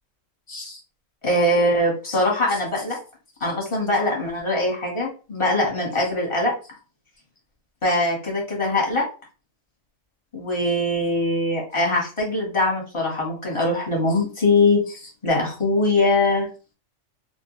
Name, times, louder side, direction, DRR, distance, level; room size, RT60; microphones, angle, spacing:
voice 1, 0.5-0.8 1.2-3.0 3.4-6.5 7.8-9.1 10.3-16.5, left 2 dB, 25° left, -2 dB, 0.9 m, -22 dB
2.3 x 2.2 x 2.8 m, 0.34 s
omnidirectional pair, 1.4 m